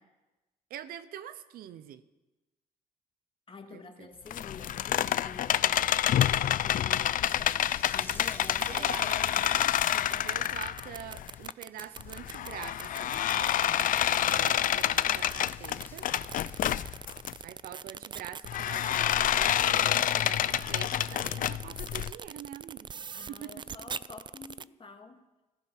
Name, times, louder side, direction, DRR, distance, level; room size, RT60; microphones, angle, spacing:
voice 1, 0.7-2.0 3.7-4.1 8.7-9.7 10.2-16.1 17.4-22.9 23.3-23.8, right 10 dB, 85° right, 14 dB, 0.9 m, -45 dB
voice 2, 3.5-10.3 23.1-25.2, left 4 dB, 35° left, 5 dB, 2.1 m, -48 dB
sound 1, 4.3-11.5 12.0-17.3 18.5-22.1, left 11 dB, 70° left, 0.5 m, -28 dB
sound 2, 7.1-10.3 10.6-10.9 11.2-16.9, left 2 dB, 15° left, 2.0 m, -52 dB
sound 3, 8.1-24.6, right 6 dB, 30° right, 0.4 m, -42 dB
14.5 x 14.5 x 6.0 m, 1.1 s
cardioid pair, 80°, 15 cm